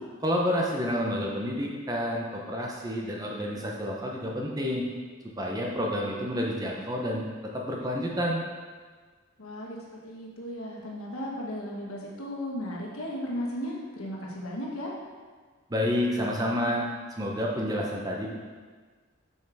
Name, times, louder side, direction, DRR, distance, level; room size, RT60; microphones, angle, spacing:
voice 1, 0.2-4.8 5.4-7.2 7.5-8.4 15.7-16.8 17.2-18.3, equal, 15° right, -1 dB, 0.7 m, -29 dB
voice 2, 9.4-14.9, equal, 90° left, -2 dB, 1.4 m, -35 dB
7.3 x 5.4 x 3.5 m, 1.5 s
head